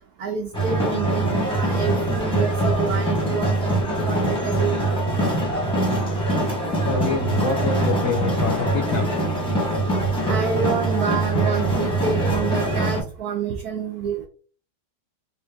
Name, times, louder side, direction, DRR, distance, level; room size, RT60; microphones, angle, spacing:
voice 1, 0.2-5.0 10.3-14.3, right 6 dB, 70° right, 2 dB, 1.1 m, -28 dB
sound 1, 0.5-13.0, right 1 dB, 5° left, 0.8 m, -23 dB
voice 2, 6.8-9.1, left 5 dB, 65° left, 4 dB, 0.9 m, -26 dB
3.3 x 2.8 x 3.4 m, 0.40 s
omnidirectional pair, 1.8 m